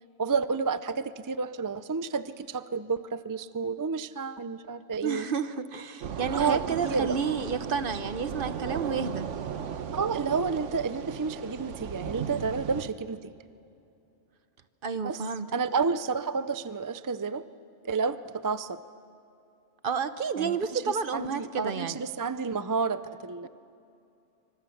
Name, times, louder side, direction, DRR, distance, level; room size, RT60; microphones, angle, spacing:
voice 1, 0.2-5.3 6.3-7.2 9.9-13.3 14.9-15.2 15.5-17.5 17.8-18.8 20.4-23.5, right 5 dB, 30° right, 13 dB, 0.4 m, -30 dB
voice 2, 5.0-9.3 14.8-15.5 19.8-22.0, right 6 dB, 50° right, 12 dB, 1.0 m, -30 dB
sound 1, 6.0-12.9, right 7 dB, 85° right, 1.3 m, -36 dB
25.5 x 25.5 x 7.2 m, 2.7 s
omnidirectional pair, 1.2 m